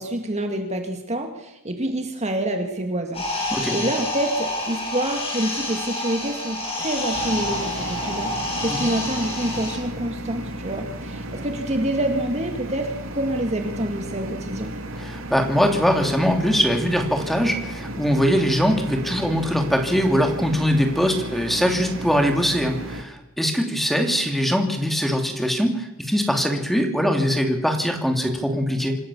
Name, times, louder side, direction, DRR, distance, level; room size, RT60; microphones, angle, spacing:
voice 1, 0.0-14.7, right 1 dB, 30° right, 5 dB, 1.9 m, -27 dB
sound 1, 3.1-9.8, left 1 dB, 30° left, 7.3 m, -28 dB
voice 2, 3.5-3.8 8.7-8.8 15.0-29.0, equal, ahead, 3 dB, 2.7 m, -22 dB
sound 2, 7.1-23.0, right 1 dB, 70° right, 2.8 m, -34 dB
26.5 x 14.0 x 7.1 m, 0.91 s
head